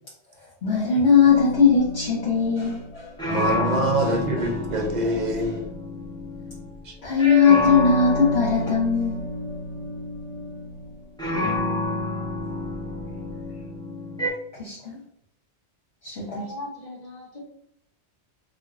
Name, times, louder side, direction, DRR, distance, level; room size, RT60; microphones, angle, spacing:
voice 1, 0.6-3.7 4.0-4.1 5.3-5.5 7.0-9.3 14.6-15.0 16.0-16.4, left 6 dB, 75° left, -6 dB, 1.1 m, -20 dB
sound 1, 1.3-6.9 7.2-14.3, left 1 dB, 5° left, 0.5 m, -29 dB
voice 2, 3.3-5.6 6.9-7.0, right 1 dB, 50° right, 2 dB, 0.7 m, -25 dB
voice 3, 16.3-17.4, left 1 dB, 45° left, -3 dB, 1.0 m, -38 dB
4.4 x 2.2 x 2.4 m, 0.71 s
omnidirectional pair, 1.1 m